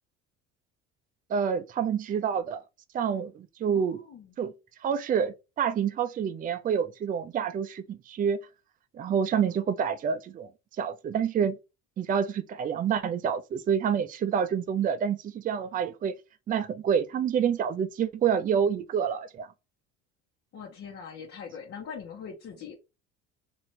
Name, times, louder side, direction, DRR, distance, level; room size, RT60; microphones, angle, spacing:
voice 1, 1.3-2.6 2.9-4.0 4.4-4.5 4.8-8.4 8.9-10.5 10.8-11.6 12.0-16.1 16.5-19.5, right 7 dB, 30° right, 0.5 m, -28 dB
voice 2, 3.7-4.3 9.3-9.5 20.5-22.8, left 6 dB, 50° left, 1.3 m, -42 dB
3.0 x 2.8 x 4.5 m
cardioid pair, 110°, 29 cm